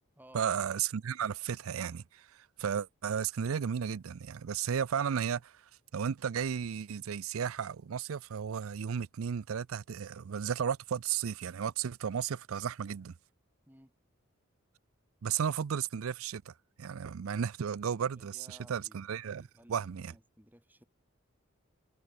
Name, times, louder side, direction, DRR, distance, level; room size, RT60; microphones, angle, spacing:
voice 1, 0.3-5.6 5.9-13.1 15.2-16.5 16.8-20.1, right 7 dB, 85° right, 0.4 m, -34 dB
voice 2, 18.0-19.0 19.4-20.8, right 1 dB, 10° right, 6.2 m, -58 dB
head